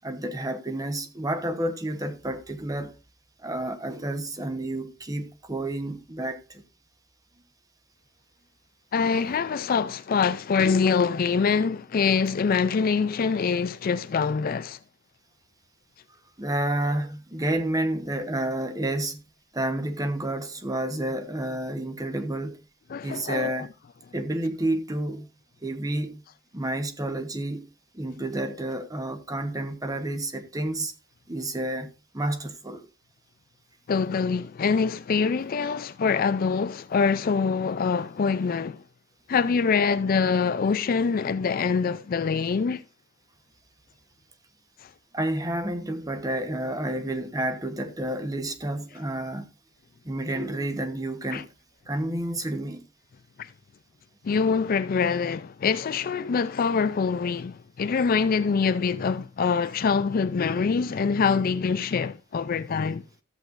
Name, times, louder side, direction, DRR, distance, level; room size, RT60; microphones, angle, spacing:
voice 1, 0.0-2.9 3.4-6.6 16.4-19.2 19.5-22.6 23.0-23.7 24.1-25.3 25.6-26.2 26.5-27.6 27.9-30.9 31.3-31.9 32.1-32.9 45.1-49.5 50.0-51.5 51.9-52.8, right 1 dB, 15° right, 1.0 m, -30 dB
voice 2, 8.9-14.8 22.9-23.7 33.9-38.8 39.3-42.8 44.8-44.9 51.3-51.4 53.4-53.5 54.2-63.0, left 5 dB, 45° left, 0.4 m, -24 dB
13.5 x 7.9 x 2.5 m
head